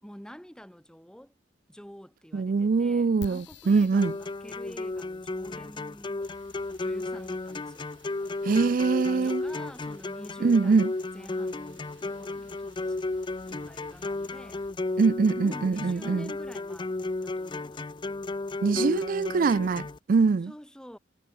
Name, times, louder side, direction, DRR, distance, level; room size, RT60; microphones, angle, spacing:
voice 1, 0.0-1.3 1.7-6.3 6.8-7.9 8.6-13.0 13.5-15.0 15.4-17.9 18.7-19.5 20.4-21.0, equal, 5° left, 4.1 m, -48 dB
voice 2, 2.3-4.1 8.4-9.4 10.4-10.9 15.0-16.3 18.6-20.5, right 4 dB, 45° right, 0.4 m, -23 dB
sound 1, 3.2-17.9, left 3 dB, 70° left, 2.7 m, -56 dB
sound 2, 4.0-20.0, left 2 dB, 25° left, 0.5 m, -34 dB
sound 3, 6.2-14.7, right 6 dB, 75° right, 6.6 m, -62 dB
head